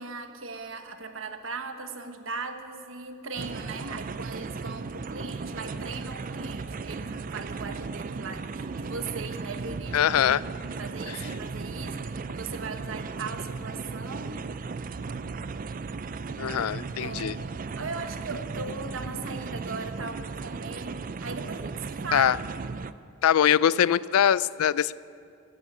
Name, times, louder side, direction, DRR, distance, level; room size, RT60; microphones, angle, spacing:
voice 1, 0.0-10.0 10.6-14.4 17.0-17.4 17.7-22.3, right 4 dB, 65° right, 7 dB, 1.2 m, -38 dB
sound 1, 3.4-22.9, right 4 dB, 40° right, 0.4 m, -36 dB
voice 2, 9.9-10.4 16.4-17.3 22.1-22.4 23.2-25.0, left 9 dB, 85° left, 20 dB, 0.4 m, -22 dB
15.5 x 10.5 x 8.3 m, 2.4 s
head